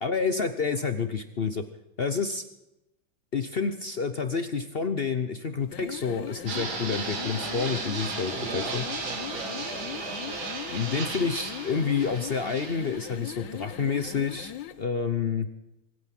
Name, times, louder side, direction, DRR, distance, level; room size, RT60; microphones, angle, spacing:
voice 1, 0.0-1.6 2.0-2.4 3.3-8.8 10.7-14.5 14.8-15.5, left 5 dB, 55° left, 9 dB, 0.6 m, -29 dB
sound 1, 5.6-14.8, left 11 dB, 70° left, 1.4 m, -40 dB
sound 2, 6.3-11.3, left 3 dB, 25° left, 4.0 m, -49 dB
Fixed-wing aircraft airplane, 6.5-14.4, right 4 dB, 80° right, 3.1 m, -36 dB
voice 2, 8.3-10.4, right 3 dB, 50° right, 2 dB, 2.2 m, -40 dB
24.5 x 9.5 x 5.9 m, 0.90 s
omnidirectional pair, 2.2 m